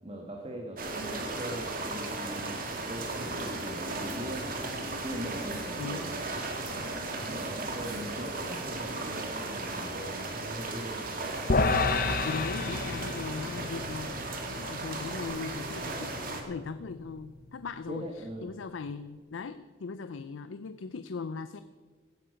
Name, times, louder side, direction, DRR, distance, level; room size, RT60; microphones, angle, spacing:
voice 1, 0.0-2.6 2.9-4.6 5.0-6.2 7.3-11.0 17.9-18.5, right 1 dB, 30° right, 1 dB, 1.4 m, -40 dB
sound 1, 0.8-16.4, right 2 dB, 45° right, 2.0 m, -36 dB
sound 2, 4.2-9.6, right 3 dB, 65° right, 4.6 m, -57 dB
voice 2, 5.8-6.1 12.2-21.6, left 4 dB, 80° left, 13 dB, 0.5 m, -39 dB
sound 3, 11.5-17.9, left 3 dB, 45° left, 0.8 m, -32 dB
16.5 x 10.0 x 5.2 m, 1.5 s
head